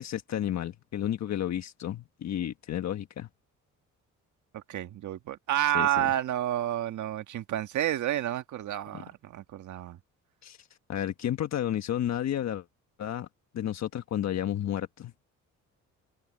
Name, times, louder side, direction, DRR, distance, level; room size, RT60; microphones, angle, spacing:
voice 1, 0.0-3.3 5.7-6.1 8.9-9.0 10.4-12.6 13.0-13.3 13.5-15.1, left 11 dB, 65° left, 1.3 m, -32 dB
voice 2, 4.5-10.0, right 12 dB, 75° right, 1.7 m, -30 dB
open air
cardioid pair, 90°, 30 cm